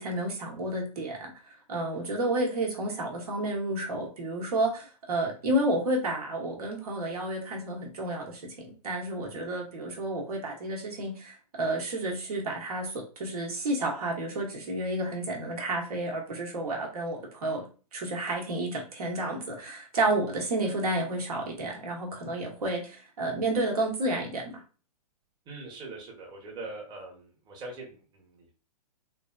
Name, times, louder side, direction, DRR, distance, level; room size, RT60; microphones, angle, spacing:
voice 1, 0.0-1.3 1.7-17.7 17.9-24.6, right 1 dB, 65° right, 0 dB, 1.1 m, -31 dB
voice 2, 25.5-28.5, right 2 dB, 20° right, -1 dB, 1.0 m, -42 dB
3.2 x 2.6 x 2.3 m, 0.36 s
figure-of-eight pair, 115°, 20 cm